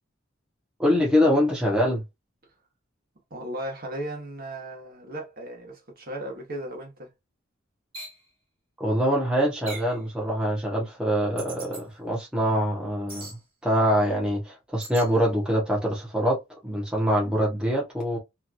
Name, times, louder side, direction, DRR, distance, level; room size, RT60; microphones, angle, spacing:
voice 1, 0.8-2.0 8.8-16.4 16.6-18.2, equal, 5° right, 0.8 m, -24 dB
voice 2, 3.3-7.1, right 1 dB, 45° right, 1.2 m, -36 dB
sound 1, 7.9-8.2 9.7-10.0 11.4-11.8 13.1-13.4 14.8-15.1, right 3 dB, 30° right, 1.3 m, -39 dB
2.8 x 2.3 x 2.6 m
head